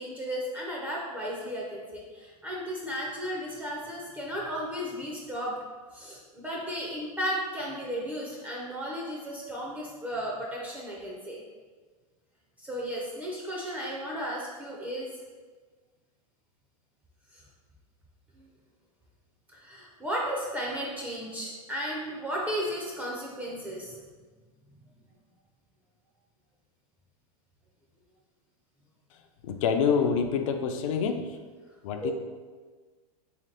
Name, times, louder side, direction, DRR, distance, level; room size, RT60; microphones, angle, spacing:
voice 1, 0.0-5.5 5.9-11.4 12.6-15.1 18.4-18.5 19.5-24.0 32.0-32.1, equal, 10° right, -4 dB, 0.4 m, -34 dB
voice 2, 29.4-31.3 31.8-32.1, left 6 dB, 60° left, 6 dB, 0.4 m, -26 dB
3.4 x 2.8 x 3.2 m, 1.4 s
hypercardioid pair, 135°, 19 cm